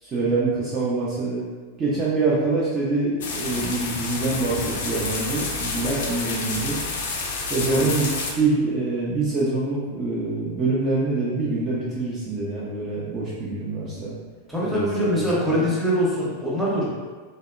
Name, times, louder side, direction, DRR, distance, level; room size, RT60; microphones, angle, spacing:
voice 1, 0.0-1.4 1.8-6.8 7.5-8.1 8.4-14.1 14.6-15.7, right 3 dB, 25° right, -7 dB, 0.4 m, -25 dB
sound 1, 3.2-8.3, left 3 dB, 55° left, 0.4 m, -29 dB
voice 2, 14.5-16.8, equal, 5° right, -8 dB, 0.7 m, -23 dB
2.7 x 2.0 x 2.3 m, 1.4 s
figure-of-eight pair, 90°, 0 cm